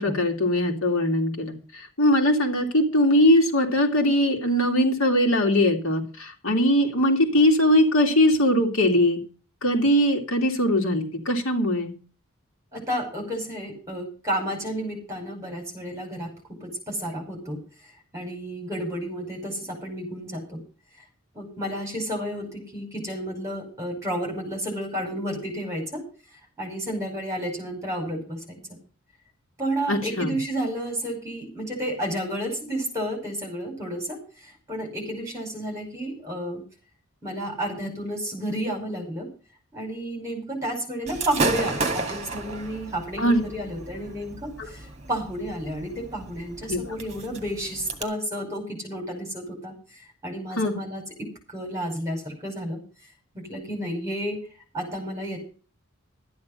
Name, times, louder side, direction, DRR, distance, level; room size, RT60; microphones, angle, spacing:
voice 1, 0.0-1.5 2.0-9.2 9.6-11.9 29.9-30.4 43.2-43.4 46.7-47.0 50.6-50.8, left 1 dB, 70° left, 3 dB, 2.5 m, -21 dB
voice 2, 12.7-17.6 18.1-20.6 21.3-26.0 26.6-28.6 29.6-36.6 37.2-39.3 39.7-51.0 51.5-52.8 53.3-54.4 54.7-55.4, equal, 15° right, 2 dB, 5.2 m, -31 dB
Gunshot gunfire / Fireworks, 41.1-48.0, right 3 dB, 30° right, 2.0 m, -33 dB
12.5 x 9.6 x 5.5 m, 0.38 s
head